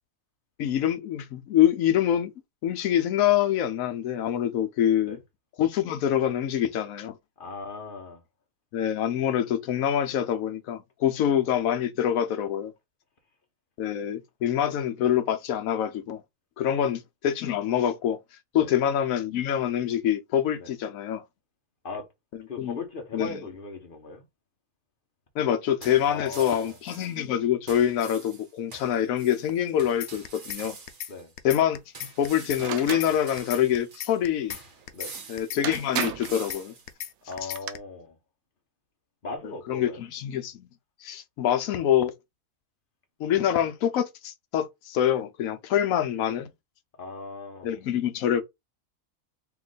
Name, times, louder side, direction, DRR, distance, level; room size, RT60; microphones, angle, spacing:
voice 1, 0.6-2.3 2.6-5.2 5.6-7.2 8.7-12.7 13.8-16.2 16.6-18.2 18.5-21.2 22.6-22.8 23.1-23.4 25.4-30.8 31.4-31.8 32.2-34.6 35.3-36.7 39.4-40.7 41.0-42.1 43.2-46.5 47.6-48.4, left 10 dB, 70° left, 1.0 m, -25 dB
voice 2, 7.4-8.2 16.6-16.8 18.5-18.7 20.6-20.7 21.8-22.1 22.5-24.2 26.1-26.8 31.1-31.3 34.9-35.1 37.3-38.2 39.2-40.0 47.0-47.8, left 3 dB, 45° left, 0.9 m, -38 dB
sound 1, 25.8-27.2 27.7-31.3 31.9-34.2 34.5-36.9, right 4 dB, 35° right, 1.0 m, -46 dB
sound 2, 30.0-30.6 30.9-31.1 31.4-32.6 32.9-33.1 33.4-34.6 34.9-35.1 35.4-36.6 36.9-37.1 37.4-37.8, left 11 dB, 85° left, 1.1 m, -36 dB
sound 3, 32.6-33.1 35.2-35.3 35.6-36.4 37.3-37.7, right 10 dB, 70° right, 1.0 m, -32 dB
3.1 x 3.0 x 3.9 m
omnidirectional pair, 1.6 m